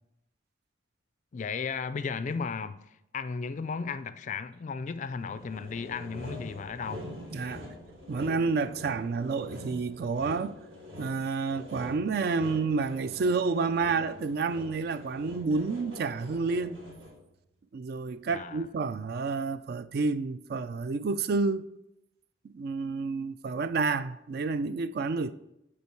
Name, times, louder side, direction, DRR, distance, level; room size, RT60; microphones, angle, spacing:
voice 1, 1.3-7.1 18.3-18.7, left 5 dB, 40° left, 0.3 m, -35 dB
Sawing, 5.2-17.3, left 1 dB, 75° right, 3.0 m, -45 dB
voice 2, 7.3-7.6 8.1-10.6 11.0-16.8 17.7-21.6 22.4-25.3, right 4 dB, 55° right, 0.3 m, -29 dB
8.4 x 4.4 x 4.6 m
head